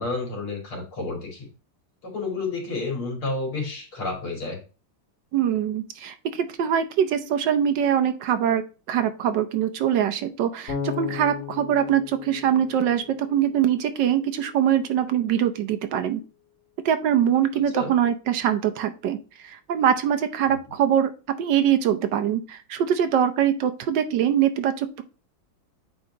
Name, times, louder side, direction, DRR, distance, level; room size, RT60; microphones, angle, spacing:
voice 1, 0.0-1.5 2.0-4.6 17.7-17.9 20.4-20.6, left 3 dB, 85° left, -1 dB, 3.3 m, -30 dB
voice 2, 5.3-8.6 8.9-16.2 16.8-21.1 21.4-25.0, right 9 dB, 65° right, 9 dB, 1.3 m, -23 dB
Bass guitar, 10.7-13.7, left 6 dB, 65° left, 3.2 m, -35 dB
8.8 x 3.8 x 2.8 m, 0.33 s
omnidirectional pair, 2.3 m